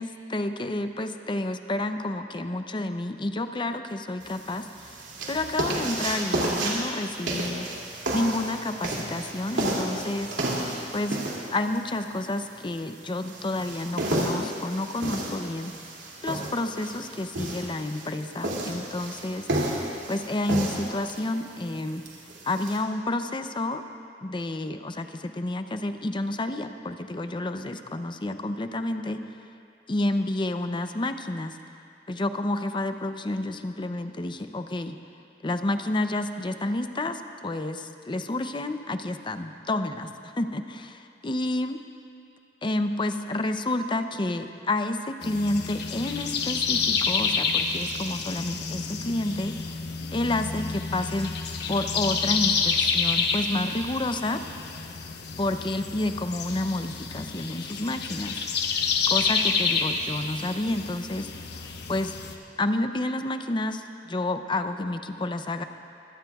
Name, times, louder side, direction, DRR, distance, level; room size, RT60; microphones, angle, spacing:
voice 1, 0.0-4.7 4.9-7.7 8.1-10.3 10.9-11.2 11.5-15.8 16.2-19.5 20.1-22.0 22.4-23.8 24.2-29.2 29.9-31.6 32.1-35.0 35.4-41.8 42.6-49.7 50.1-51.4 51.7-54.4 55.4-58.4 59.1-61.3 61.9-62.1 62.6-65.6, left 2 dB, 25° left, 8 dB, 0.6 m, -30 dB
sound 1, 4.2-22.8, right 1 dB, 90° right, 2.6 m, -32 dB
sound 2, 45.2-62.3, left 5 dB, 65° left, 1.1 m, -29 dB
23.5 x 17.0 x 2.4 m, 2.5 s
head